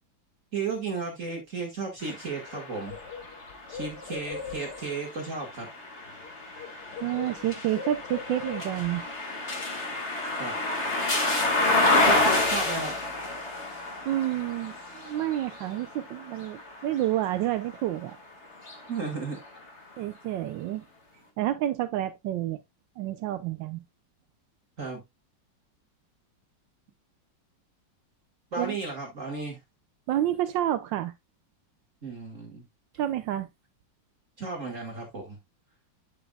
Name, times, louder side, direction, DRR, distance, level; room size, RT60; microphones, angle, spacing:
voice 1, 0.5-3.0 3.7-5.7 10.4-10.5 12.0-13.0 18.9-19.4 24.8-25.0 28.5-29.6 32.0-32.7 34.4-35.4, right 4 dB, 45° right, 1.8 m, -34 dB
sound 1, 2.0-17.9 18.5-19.7, left 2 dB, 35° left, 2.1 m, -30 dB
Bird, 2.1-2.2 2.5-5.0 6.1-6.3 6.6-9.0, left 5 dB, 70° left, 1.7 m, -41 dB
voice 2, 7.0-9.0 14.1-18.2 20.0-20.8 21.4-22.6 23.0-23.8 28.6-28.8 30.1-31.1 33.0-33.5, right 13 dB, 80° right, 1.3 m, -29 dB
11.0 x 5.2 x 2.2 m
omnidirectional pair, 2.0 m